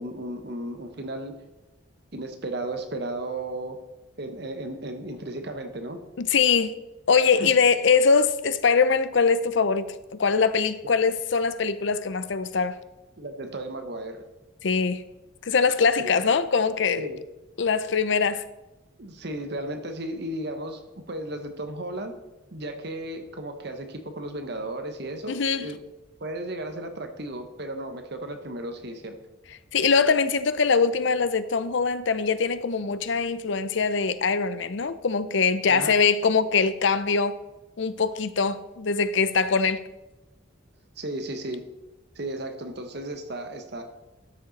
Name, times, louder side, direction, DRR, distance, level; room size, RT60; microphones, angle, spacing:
voice 1, 0.0-1.4 2.1-3.8 4.2-6.0 7.4-7.5 13.2-14.2 16.0-16.2 17.0-17.2 19.0-22.1 22.5-25.8 26.2-29.2 35.7-35.9 41.0-41.7 42.1-43.8, right 1 dB, 55° right, 1.0 m, -34 dB
voice 2, 6.2-6.7 7.1-9.9 10.2-12.8 14.6-15.0 15.5-17.1 17.6-18.4 25.3-25.7 29.7-37.4 37.8-39.9, left 5 dB, 60° left, 0.6 m, -22 dB
12.5 x 6.6 x 4.1 m
head